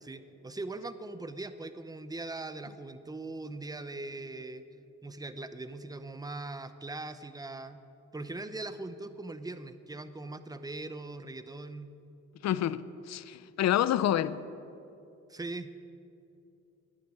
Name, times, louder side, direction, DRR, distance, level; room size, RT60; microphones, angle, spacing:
voice 1, 0.0-4.7 5.0-7.8 8.1-11.9 15.3-15.7, right 2 dB, 15° right, 0.8 m, -40 dB
voice 2, 12.4-14.4, left 11 dB, 60° left, 0.6 m, -28 dB
11.5 x 9.4 x 9.7 m
cardioid pair, 90°, 30 cm